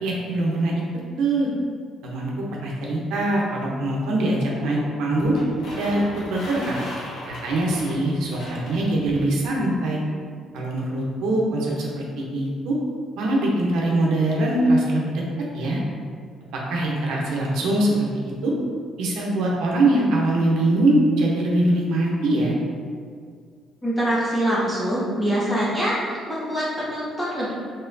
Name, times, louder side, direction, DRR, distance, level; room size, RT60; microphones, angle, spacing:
voice 1, 0.0-0.8 1.2-1.5 2.0-2.3 2.6-5.4 5.8-6.0 6.3-6.8 7.3-10.0 10.5-12.8 13.2-15.2 15.5-15.8 16.5-18.5 19.0-22.5, right 1 dB, 90° right, -3 dB, 0.8 m, -22 dB
sound 1, 5.2-9.3, left 1 dB, 60° left, 1.0 m, -37 dB
voice 2, 23.8-27.5, equal, 15° left, -9 dB, 1.3 m, -24 dB
4.3 x 3.7 x 2.7 m, 2.1 s
cardioid pair, 155°, 0 cm